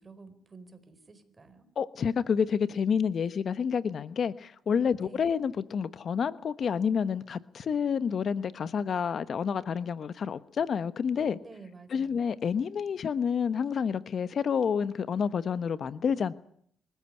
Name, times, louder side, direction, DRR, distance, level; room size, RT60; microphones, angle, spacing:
voice 1, 0.0-1.7 5.0-5.2 11.4-12.2, right 4 dB, 30° right, 12 dB, 4.5 m, -51 dB
voice 2, 1.8-11.4 11.9-16.3, left 6 dB, 55° left, 14 dB, 1.1 m, -29 dB
25.0 x 14.0 x 9.9 m, 0.62 s
cardioid pair, 90°, 0 cm